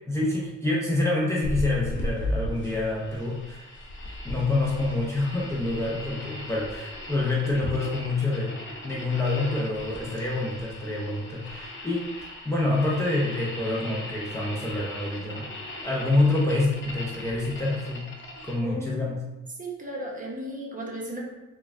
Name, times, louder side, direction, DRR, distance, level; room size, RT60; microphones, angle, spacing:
voice 1, 0.1-3.6 4.2-8.6 8.8-12.0 12.4-15.5 15.8-18.1 18.4-19.2, left 2 dB, 10° left, -5 dB, 0.6 m, -27 dB
sound 1, 1.4-18.5, left 1 dB, 40° left, 0.9 m, -37 dB
voice 2, 18.6-19.1 19.6-21.2, right 1 dB, 25° right, -2 dB, 0.9 m, -35 dB
3.8 x 2.3 x 3.5 m, 1.0 s
cardioid pair, 90°, 30 cm